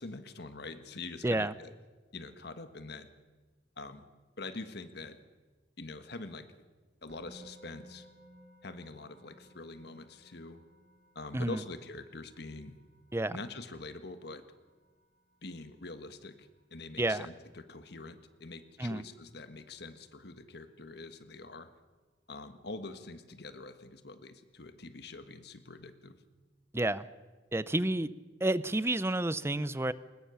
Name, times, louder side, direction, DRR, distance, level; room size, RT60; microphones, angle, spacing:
voice 1, 0.0-1.7 2.1-3.1 3.8-4.1 4.4-5.2 5.8-6.5 7.0-8.1 8.6-10.6 11.1-12.8 13.3-14.4 15.4-21.7 22.3-26.2, left 3 dB, 65° left, 9 dB, 1.5 m, -45 dB
voice 2, 1.2-1.5 11.3-11.6 13.1-13.4 17.0-17.3 18.8-19.0 26.7-27.1 27.5-28.1 28.4-29.9, right 1 dB, 15° right, 16 dB, 0.7 m, -30 dB
Musical instrument, 7.1-18.2, right 1 dB, 65° right, 5.2 m, -60 dB
22.0 x 20.5 x 7.1 m, 1.3 s
head